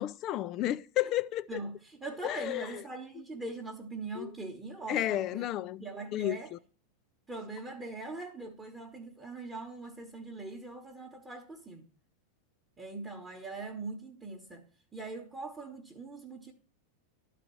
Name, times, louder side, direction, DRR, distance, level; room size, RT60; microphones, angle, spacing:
voice 1, 0.0-1.6 2.2-2.8 4.2-4.3 4.9-5.8 6.1-6.4, left 13 dB, 35° left, 0.4 m, -32 dB
voice 2, 1.5-5.5 5.8-6.5 7.3-11.8 12.8-14.7 14.9-16.5, right 3 dB, 10° right, 1.1 m, -42 dB
11.5 x 4.2 x 6.9 m
supercardioid pair, 145°, 0 cm